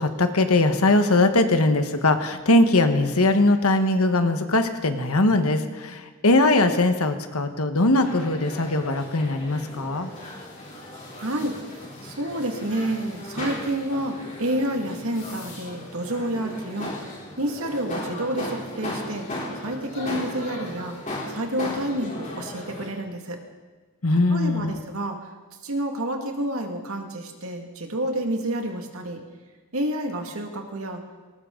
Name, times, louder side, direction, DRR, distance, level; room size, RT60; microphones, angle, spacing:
voice 1, 0.0-10.1 24.0-24.8, left 2 dB, 85° left, 7 dB, 1.4 m, -21 dB
sound 1, 7.9-22.9, left 1 dB, 35° left, 3.6 m, -36 dB
voice 2, 11.2-11.6 12.0-16.9 17.4-19.2 19.6-21.0 21.3-23.4 24.3-25.2 25.6-29.2 29.7-31.0, right 1 dB, 75° right, 3 dB, 2.1 m, -29 dB
19.5 x 19.0 x 3.9 m, 1.3 s
head